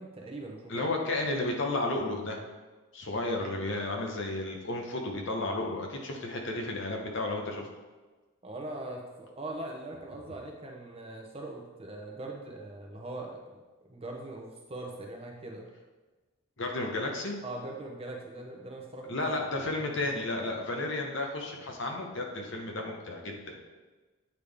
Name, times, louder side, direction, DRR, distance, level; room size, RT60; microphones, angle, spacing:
voice 1, 0.0-0.9 8.4-13.4 13.9-15.7 17.4-20.4, right 2 dB, 25° right, 0 dB, 0.7 m, -41 dB
voice 2, 0.7-2.4 2.9-7.7 16.6-17.4 19.1-23.6, left 2 dB, 55° left, 2 dB, 0.8 m, -32 dB
8.2 x 3.6 x 3.4 m, 1.2 s
head